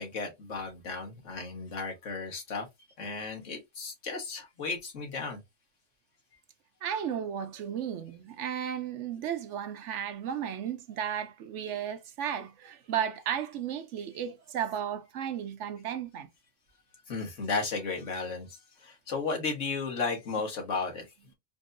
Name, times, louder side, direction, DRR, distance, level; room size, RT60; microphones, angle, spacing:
voice 1, 0.0-2.7 3.0-5.4 17.1-21.1, left 4 dB, 80° left, 1.7 m, -34 dB
voice 2, 6.8-16.3, right 9 dB, 75° right, 1.0 m, -34 dB
4.5 x 2.7 x 2.5 m
omnidirectional pair, 1.3 m